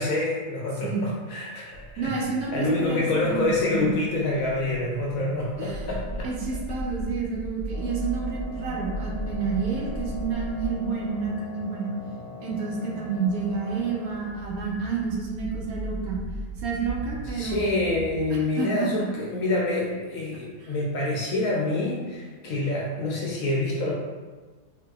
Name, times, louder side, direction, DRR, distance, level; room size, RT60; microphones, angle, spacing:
voice 1, 0.0-2.1 2.5-6.3 17.3-23.9, left 2 dB, 70° left, -3 dB, 0.9 m, -27 dB
sound 1, 1.7-18.3, right 1 dB, 50° left, 0.5 m, -37 dB
voice 2, 2.0-4.0 5.6-5.9 6.2-11.9 12.4-16.2 16.6-17.7 18.3-19.1 20.6-20.7, right 5 dB, 70° right, -3 dB, 1.0 m, -29 dB
Wind instrument woodwind instrument, 7.7-14.4, left 5 dB, 55° right, 0.6 m, -42 dB
3.7 x 2.6 x 2.3 m, 1.4 s
omnidirectional pair, 1.7 m